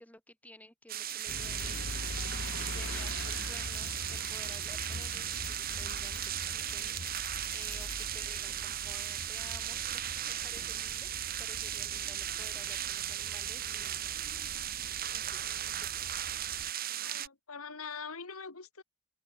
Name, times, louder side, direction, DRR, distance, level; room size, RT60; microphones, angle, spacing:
voice 1, 0.0-1.8 2.6-14.0 15.1-16.2, left 1 dB, 5° left, 4.1 m, -54 dB
sound 1, 0.9-17.3, right 12 dB, 40° right, 1.3 m, -36 dB
sound 2, 1.1-8.0, left 10 dB, 30° left, 2.3 m, -50 dB
sound 3, 1.3-16.7, left 2 dB, 55° left, 1.2 m, -44 dB
voice 2, 17.0-18.8, left 5 dB, 85° left, 2.0 m, -43 dB
open air
head